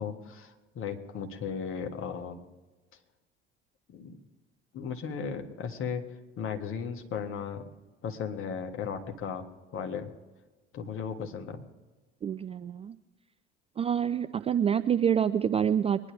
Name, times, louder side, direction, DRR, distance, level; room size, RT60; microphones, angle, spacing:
voice 1, 0.0-2.4 3.9-4.2 4.7-6.0 6.4-7.6 8.0-9.4 9.7-10.1 10.7-11.6, left 6 dB, 40° left, 5 dB, 1.7 m, -36 dB
voice 2, 12.2-12.9 13.8-16.1, right 8 dB, 20° right, 12 dB, 0.3 m, -27 dB
23.0 x 11.0 x 3.5 m, 1.2 s
figure-of-eight pair, 60°, 31 cm